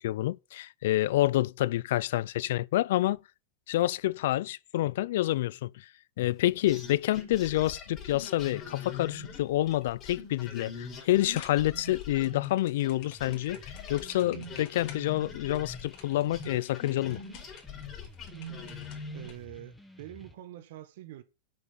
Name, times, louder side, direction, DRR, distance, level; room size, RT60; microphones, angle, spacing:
voice 1, 0.0-3.2 3.7-5.9 6.2-17.2, left 15 dB, 70° left, 0.4 m, -28 dB
sound 1, 6.7-12.9 13.2-19.4, left 5 dB, 30° left, 3.3 m, -42 dB
sound 2, 11.3-19.3, left 9 dB, 55° left, 2.6 m, -52 dB
sound 3, 13.0-20.3, left 1 dB, ahead, 1.4 m, -53 dB
voice 2, 19.1-21.2, right 13 dB, 70° right, 1.4 m, -45 dB
7.9 x 6.5 x 5.7 m
hypercardioid pair, 120°, 0 cm